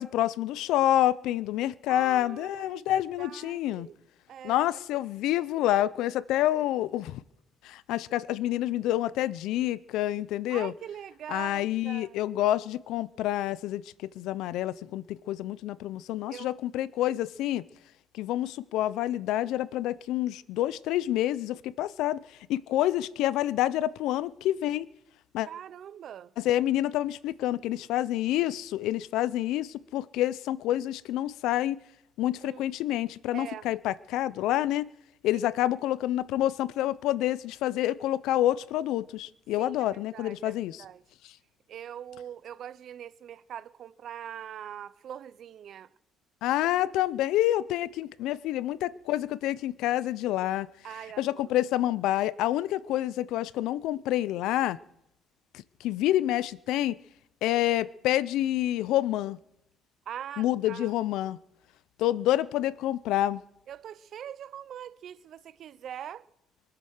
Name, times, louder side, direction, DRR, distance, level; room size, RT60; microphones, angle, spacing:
voice 1, 0.0-3.9 4.4-7.2 7.6-10.7 11.3-13.8 14.2-17.6 18.1-22.2 22.5-24.9 25.3-25.5 26.4-31.8 32.2-34.9 35.2-40.8 46.4-50.7 51.2-54.8 55.8-57.0 57.4-59.4 60.4-61.4 62.0-63.4, left 13 dB, 80° left, 0.5 m, -28 dB
voice 2, 1.9-4.0 4.3-4.7 10.5-12.2 16.3-16.5 25.5-26.3 32.4-32.7 33.3-33.7 35.3-35.4 39.6-41.0 41.7-45.9 50.8-51.5 60.1-61.0 63.7-66.3, right 9 dB, 45° right, 0.5 m, -42 dB
24.0 x 8.7 x 6.5 m
cardioid pair, 175°, 0 cm